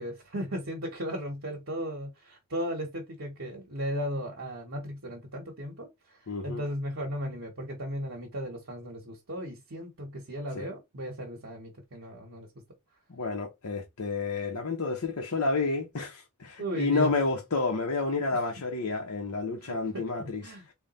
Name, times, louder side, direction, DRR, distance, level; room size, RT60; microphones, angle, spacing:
voice 1, 0.0-12.5 16.6-17.1 19.6-20.7, equal, 60° right, 1.0 m, -36 dB
voice 2, 6.3-6.6 10.5-10.7 13.1-20.4, left 3 dB, 80° left, 0.8 m, -30 dB
3.5 x 2.3 x 4.0 m
head